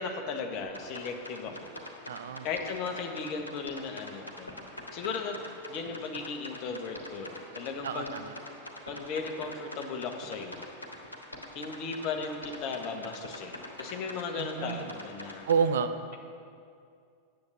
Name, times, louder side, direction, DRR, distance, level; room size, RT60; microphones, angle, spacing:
voice 1, 0.0-1.7 2.4-4.6 4.9-5.4 5.7-8.2 8.9-10.7 11.5-15.5, left 4 dB, 40° left, 4 dB, 1.3 m, -36 dB
sound 1, 0.7-15.6, left 1 dB, 80° left, 1.5 m, -44 dB
voice 2, 2.1-2.5 7.8-8.2 14.4-14.9 15.5-16.1, right 6 dB, 60° right, 9 dB, 0.6 m, -29 dB
10.5 x 7.8 x 6.9 m, 2.4 s
figure-of-eight pair, 90°, 0 cm